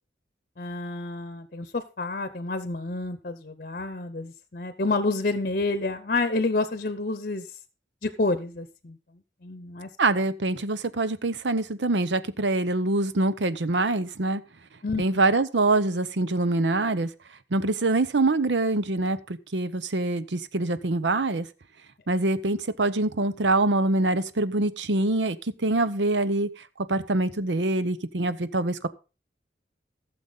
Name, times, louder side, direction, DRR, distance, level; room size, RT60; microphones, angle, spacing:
voice 1, 0.6-7.5 8.0-9.0 9.4-9.9 14.8-15.0, left 3 dB, 50° left, 0.8 m, -29 dB
voice 2, 10.0-14.4 15.0-17.1 17.5-21.5 22.1-28.9, right 2 dB, 90° right, 0.8 m, -25 dB
15.5 x 7.1 x 4.0 m
head